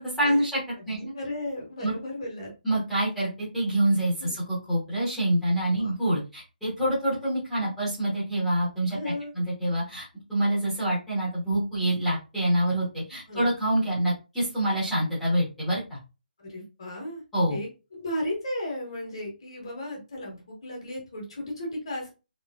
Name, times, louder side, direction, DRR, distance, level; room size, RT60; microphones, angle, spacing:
voice 1, 0.2-0.6 0.8-1.1 1.8-1.9 2.6-16.0 17.3-17.6, right 1 dB, ahead, -11 dB, 0.8 m, -26 dB
voice 2, 0.8-2.5 4.2-4.3 5.8-5.9 8.9-9.4 13.3-13.5 16.4-17.2 17.5-22.1, left 1 dB, 30° left, -1 dB, 1.2 m, -35 dB
3.1 x 3.1 x 2.3 m, 0.29 s
hypercardioid pair, 180°, 5 cm